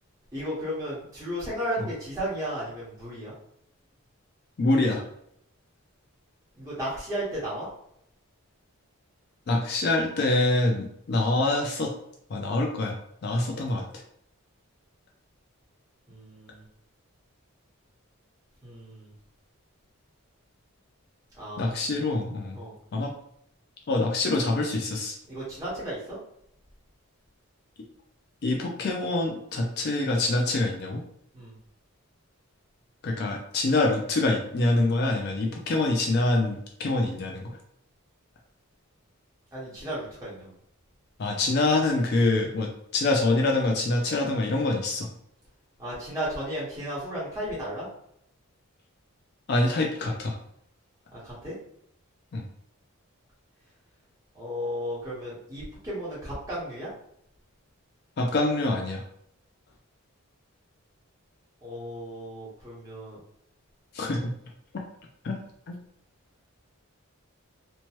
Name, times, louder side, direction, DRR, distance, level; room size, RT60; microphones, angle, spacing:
voice 1, 0.3-3.3 6.5-7.7 16.1-16.6 18.6-19.1 21.3-21.9 22.5-22.8 25.3-26.2 31.3-31.6 39.5-40.5 45.8-47.8 51.1-51.5 54.3-56.9 61.6-63.2, equal, 15° right, -8 dB, 1.2 m, -34 dB
voice 2, 4.6-5.0 9.5-11.9 12.3-13.0 13.2-13.8 21.6-22.6 22.9-23.1 23.9-25.2 28.4-31.0 33.0-37.5 41.2-45.1 49.5-50.4 52.3-52.4 58.2-59.0 63.9-64.3 65.2-65.4 65.7-65.8, left 2 dB, 45° left, 1 dB, 0.4 m, -25 dB
2.9 x 2.2 x 2.9 m, 0.72 s
head